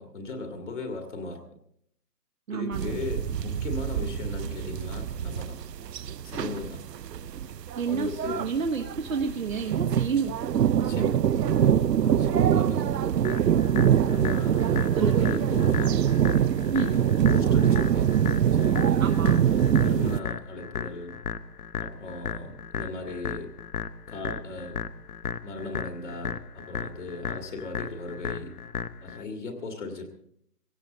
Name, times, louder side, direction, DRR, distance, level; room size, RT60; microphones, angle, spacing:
voice 1, 0.0-1.4 2.5-5.6 6.2-6.8 7.8-8.5 10.8-13.1 14.1-16.1 16.9-18.2 18.5-19.1 19.4-21.1 21.8-23.5 24.1-24.8 25.4-28.5 29.0-30.1, left 3 dB, 45° left, 3 dB, 2.1 m, -37 dB
voice 2, 2.5-3.0 7.8-10.4 14.9-15.3 16.7-17.0 19.0-19.4, right 5 dB, 55° right, 3 dB, 1.2 m, -29 dB
sound 1, 2.7-20.2, right 9 dB, 90° right, 0.7 m, -24 dB
sound 2, 13.2-29.2, left 7 dB, 65° left, 0.9 m, -35 dB
18.0 x 17.0 x 4.0 m, 0.70 s
hypercardioid pair, 175°, 48 cm